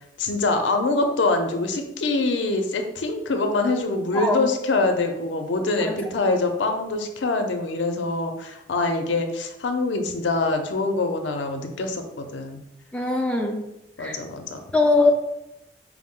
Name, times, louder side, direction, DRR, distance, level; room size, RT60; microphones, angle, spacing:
voice 1, 0.2-12.6 14.0-14.6, left 3 dB, 75° left, 5 dB, 0.5 m, -24 dB
voice 2, 4.1-4.5 5.8-6.0 12.9-13.6 14.0-14.2 14.7-15.1, left 3 dB, 5° left, 0 dB, 0.3 m, -21 dB
4.7 x 2.0 x 3.6 m, 0.85 s
head